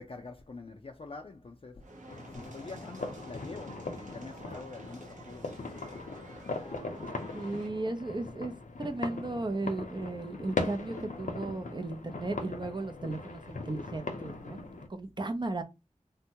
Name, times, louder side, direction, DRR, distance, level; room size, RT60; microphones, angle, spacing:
voice 1, 0.0-1.8 2.3-5.6, left 3 dB, 45° left, 0.4 m, -45 dB
sound 1, 1.8-7.7, right 2 dB, 90° right, 0.8 m, -50 dB
sound 2, 2.1-14.9, left 3 dB, 90° left, 0.6 m, -40 dB
sound 3, 4.3-4.8 6.3-7.2 8.9-9.8 10.8-11.4 12.3-12.7 13.9-14.0, equal, 60° right, 1.0 m, -53 dB
voice 2, 7.3-8.5 8.8-15.6, right 2 dB, 35° right, 0.5 m, -35 dB
3.5 x 2.1 x 2.8 m
wide cardioid pair, 70°, 13 cm